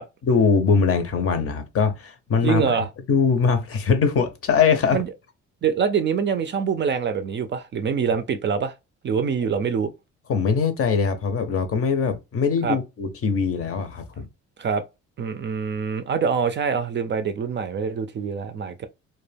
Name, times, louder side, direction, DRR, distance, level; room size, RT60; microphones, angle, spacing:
voice 1, 0.2-5.0 8.1-8.2 10.3-14.3, left 5 dB, 50° left, 0.6 m, -22 dB
voice 2, 2.4-2.9 4.9-5.1 5.6-8.7 9.0-9.9 12.6-12.8 14.6-14.8 15.2-18.9, right 6 dB, 40° right, 0.4 m, -24 dB
2.2 x 2.1 x 3.3 m
cardioid pair, 90°, 30 cm